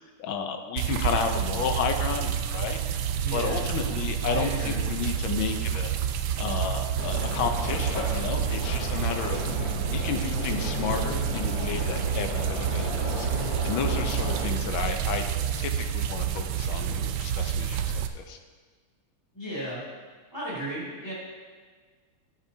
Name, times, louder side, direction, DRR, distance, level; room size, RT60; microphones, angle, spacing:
voice 1, 0.0-2.8 3.3-6.0 6.4-9.4 9.9-15.2 15.6-18.4, left 6 dB, 70° left, 5 dB, 1.5 m, -32 dB
sound 1, 0.8-18.1, right 9 dB, 80° right, 0.9 m, -29 dB
voice 2, 3.2-3.7 4.3-4.9 19.3-19.8 20.3-21.1, right 1 dB, 10° left, -7 dB, 3.1 m, -35 dB
sound 2, 7.0-14.5, left 2 dB, 45° left, 1.6 m, -34 dB
14.5 x 8.6 x 2.8 m, 1.5 s
omnidirectional pair, 2.4 m